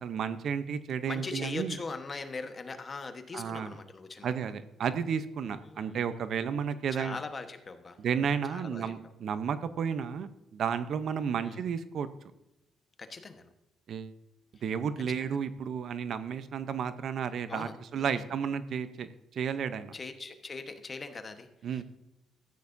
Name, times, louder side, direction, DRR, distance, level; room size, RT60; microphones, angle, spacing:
voice 1, 0.0-1.8 3.3-3.7 4.2-7.2 8.0-12.1 13.9-14.1 14.6-19.9 21.6-21.8, right 7 dB, 65° right, 12 dB, 0.7 m, -32 dB
voice 2, 1.1-4.3 5.5-6.2 6.9-8.9 11.4-11.6 13.0-13.5 14.5-14.6 15.2-15.4 17.5-18.3 19.9-21.8, left 4 dB, 35° left, 8 dB, 1.2 m, -41 dB
14.0 x 9.4 x 2.7 m, 0.92 s
cardioid pair, 90°, 0 cm